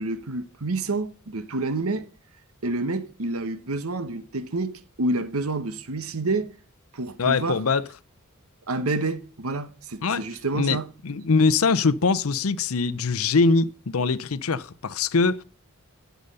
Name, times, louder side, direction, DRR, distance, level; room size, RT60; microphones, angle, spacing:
voice 1, 0.0-2.1 2.6-6.5 6.9-7.6 8.7-10.9, right 2 dB, 80° right, 1.2 m, -28 dB
voice 2, 7.2-7.9 10.0-10.3 10.5-10.8 11.0-15.4, left 4 dB, 75° left, 0.7 m, -22 dB
13.0 x 8.2 x 5.5 m
head